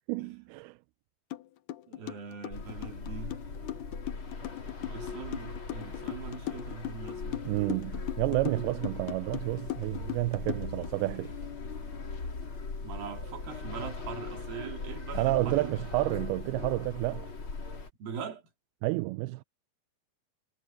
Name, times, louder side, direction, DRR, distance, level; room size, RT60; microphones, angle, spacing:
voice 1, 0.1-0.8 7.5-11.3 15.1-17.3 18.8-19.4, right 20 dB, 90° right, 2.5 m, -30 dB
sound 1, 1.3-1.4 1.7-10.9, left 14 dB, 70° left, 2.4 m, -38 dB
voice 2, 1.9-3.4 4.9-7.5 12.8-15.7 18.0-18.4, right 6 dB, 70° right, 4.5 m, -41 dB
sound 2, 2.5-17.9, left 4 dB, 35° left, 3.8 m, -40 dB
omnidirectional pair, 4.4 m